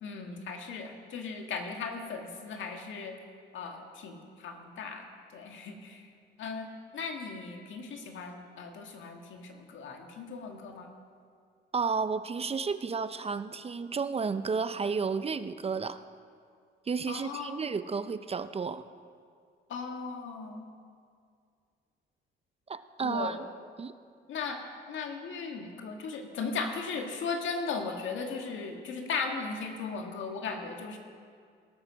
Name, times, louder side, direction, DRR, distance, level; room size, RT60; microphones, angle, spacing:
voice 1, 0.0-3.1 3.5-5.0 5.3-6.0 6.4-10.9 17.1-17.6 19.7-20.7 23.0-23.4 24.3-24.6 24.9-31.0, left 4 dB, 75° left, 3 dB, 1.9 m, -37 dB
voice 2, 11.7-16.0 16.9-18.9 22.7-23.4 23.8-23.9, right 5 dB, 30° right, 12 dB, 0.6 m, -32 dB
18.5 x 8.9 x 6.3 m, 2.2 s
cardioid pair, 90°, 20 cm